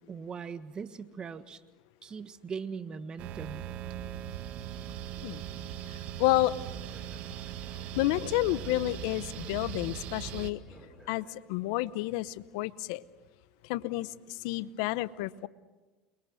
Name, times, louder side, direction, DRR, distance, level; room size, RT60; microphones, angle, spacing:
voice 1, 0.0-1.6 2.0-3.7, right 6 dB, 35° right, 11 dB, 1.5 m, -40 dB
sound 1, 3.2-10.5, right 11 dB, 60° right, 1.8 m, -40 dB
voice 2, 6.2-6.5 8.0-10.6 11.1-13.0 13.6-15.5, left 17 dB, 75° left, 17 dB, 0.8 m, -30 dB
Speech, 6.9-11.8, right 1 dB, 10° right, 7.3 m, -58 dB
29.0 x 22.5 x 6.4 m, 1.2 s
hypercardioid pair, 90°, 3 cm